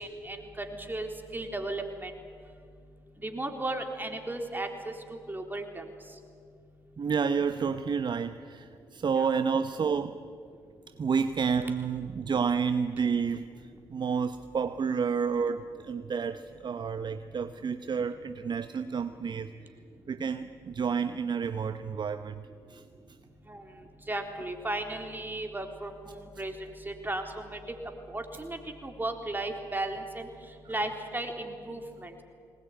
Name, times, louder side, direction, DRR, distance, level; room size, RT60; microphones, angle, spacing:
voice 1, 0.0-2.1 3.2-5.8 9.2-9.3 23.5-23.6 24.1-26.5 26.9-27.6 28.1-30.3 30.7-32.2, right 2 dB, 20° right, 4 dB, 3.7 m, -35 dB
voice 2, 7.0-10.2 11.0-13.5 13.9-19.5 20.1-22.4 22.7-22.8, right 6 dB, 45° right, 10 dB, 0.9 m, -30 dB
20.5 x 19.5 x 9.5 m, 2.3 s
hypercardioid pair, 50°, 11 cm